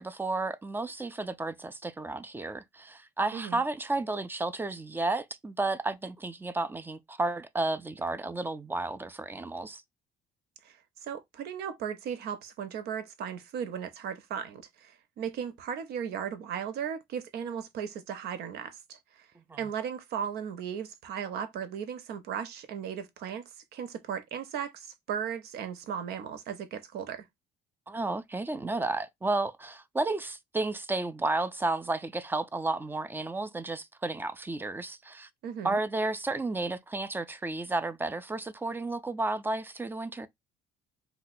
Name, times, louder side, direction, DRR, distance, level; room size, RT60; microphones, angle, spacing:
voice 1, 0.0-9.8 19.5-19.6 27.9-35.3 35.6-40.3, right 2 dB, 10° right, 0.4 m, -32 dB
voice 2, 10.6-19.3 19.6-23.4 23.7-27.3 35.4-35.8, right 8 dB, 75° right, 0.7 m, -36 dB
2.8 x 2.1 x 4.0 m
cardioid pair, 110°, 17 cm